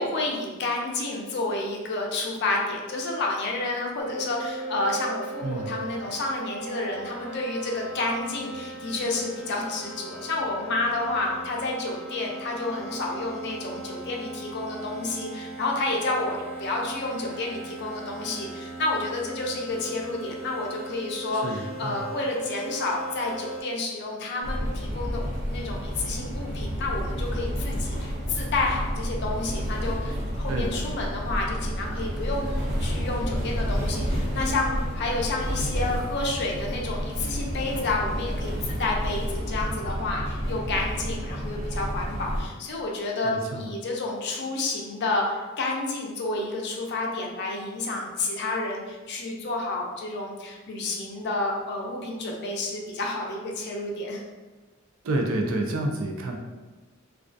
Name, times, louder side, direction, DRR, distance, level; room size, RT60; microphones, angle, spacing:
voice 1, 0.0-25.2 25.5-32.5 32.8-54.2, left 2 dB, 55° left, 0 dB, 0.4 m, -30 dB
sound 1, 4.0-23.6, right 2 dB, 10° left, 0.6 m, -39 dB
voice 2, 5.4-5.7 21.3-22.1 30.5-30.9 43.2-43.7 55.0-56.4, right 2 dB, 70° right, 2 dB, 0.4 m, -29 dB
sound 2, 24.4-42.4, equal, 55° right, 0.9 m, -30 dB
2.3 x 2.3 x 2.5 m, 1.2 s
head